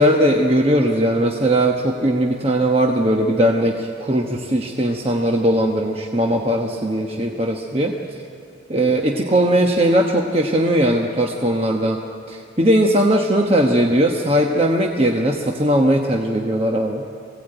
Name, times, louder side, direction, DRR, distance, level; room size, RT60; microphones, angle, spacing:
voice 1, 0.0-7.9 8.7-12.0 12.3-17.0, right 1 dB, 30° right, 1 dB, 1.1 m, -19 dB
21.5 x 17.0 x 9.0 m, 2.4 s
head